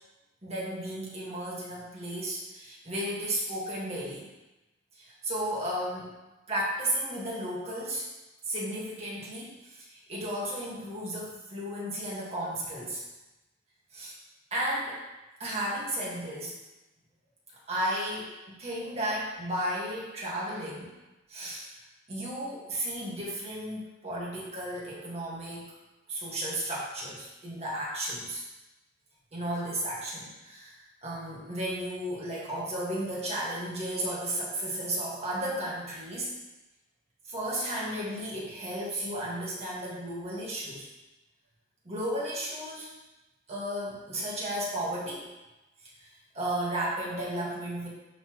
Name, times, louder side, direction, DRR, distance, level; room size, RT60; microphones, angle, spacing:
voice 1, 0.4-4.3 5.0-6.1 6.5-8.0 8.5-13.0 13.9-14.1 14.5-15.0 15.4-16.6 17.7-20.9 21.3-21.7 22.1-25.7 26.1-28.4 29.3-30.8 31.0-36.3 37.3-40.9 41.9-42.9 43.5-45.3 46.0-46.1 46.3-47.9, right 1 dB, 30° right, -5 dB, 1.8 m, -34 dB
11.0 x 4.0 x 3.1 m, 1.0 s
head